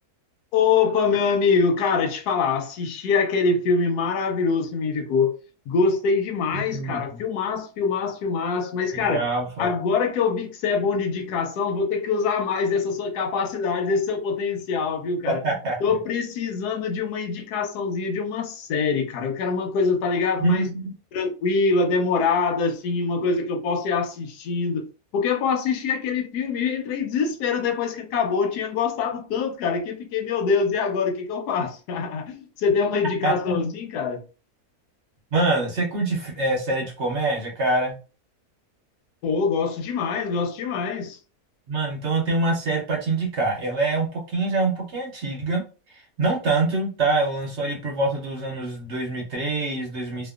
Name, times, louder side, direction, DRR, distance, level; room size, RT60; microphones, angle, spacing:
voice 1, 0.5-5.4 5.7-9.3 9.6-15.4 15.8-20.7 21.1-24.8 25.1-34.2 39.2-41.2, left 5 dB, 90° left, 1.1 m, -24 dB
voice 2, 6.5-7.2 8.9-9.7 15.3-15.8 20.4-20.9 33.2-33.3 35.3-38.0 41.7-45.6 46.2-50.3, right 3 dB, 60° right, 0.8 m, -25 dB
2.8 x 2.1 x 2.3 m
omnidirectional pair, 1.7 m